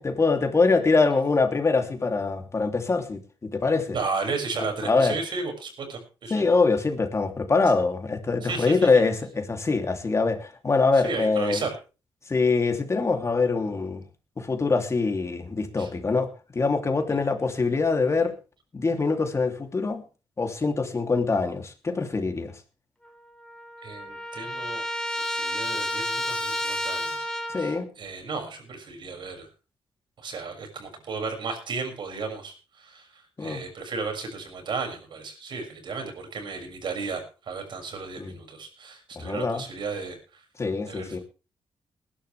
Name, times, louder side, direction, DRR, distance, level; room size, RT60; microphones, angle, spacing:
voice 1, 0.0-4.0 4.8-5.1 6.3-11.6 12.3-14.0 14.4-16.3 16.5-18.3 18.7-20.0 20.4-22.5 27.5-27.8 33.4-33.6 38.2-38.3 39.2-39.6 40.6-41.2, left 4 dB, 35° left, 5 dB, 3.0 m, -24 dB
voice 2, 3.9-6.4 8.4-8.7 10.9-11.7 15.8-15.9 17.1-17.2 23.8-24.9 25.2-27.3 27.6-29.5 30.2-40.4 40.9-41.2, right 4 dB, 65° right, 4 dB, 6.6 m, -34 dB
Trumpet, 23.1-23.2 23.4-27.8, equal, 5° left, 3.9 m, -31 dB
21.0 x 11.5 x 3.4 m, 0.33 s
cardioid pair, 85°, 9 cm